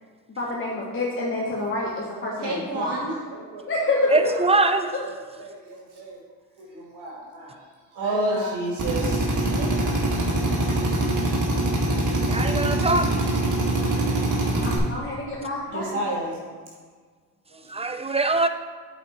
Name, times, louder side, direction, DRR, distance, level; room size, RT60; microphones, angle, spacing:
voice 1, 0.4-3.1 3.7-4.2 14.6-16.0, left 2 dB, 25° left, -4 dB, 1.3 m, -27 dB
voice 2, 2.4-3.6 4.0-4.7 5.0-6.2 6.6-7.6 7.9-10.0 10.4-10.8 12.0-12.5 13.8-14.3 15.2-15.4 15.7-16.4 17.5-17.9, right 1 dB, 60° right, -2 dB, 1.8 m, -32 dB
voice 3, 4.1-4.9 12.3-13.1 17.7-18.5, right 3 dB, 15° right, 9 dB, 0.5 m, -22 dB
Drill, 8.8-14.8, right 1 dB, 40° right, 2.0 m, -23 dB
8.2 x 4.2 x 4.3 m, 1.5 s
hypercardioid pair, 55°, 46 cm